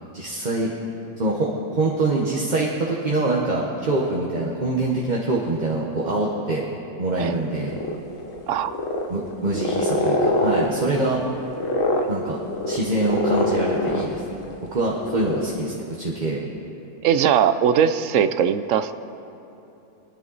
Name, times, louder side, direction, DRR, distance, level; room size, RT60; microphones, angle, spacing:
voice 1, 0.1-0.7 1.2-6.6 7.0-7.8 9.1-11.2 12.1-12.4 12.7-14.4 14.7-16.4, right 2 dB, 35° right, -2 dB, 1.1 m, -24 dB
sound 1, 7.6-14.6 14.9-15.4, left 1 dB, 60° left, 1.4 m, -24 dB
voice 2, 17.0-18.9, right 8 dB, 65° right, 12 dB, 0.9 m, -20 dB
24.0 x 10.5 x 4.0 m, 2.9 s
omnidirectional pair, 1.6 m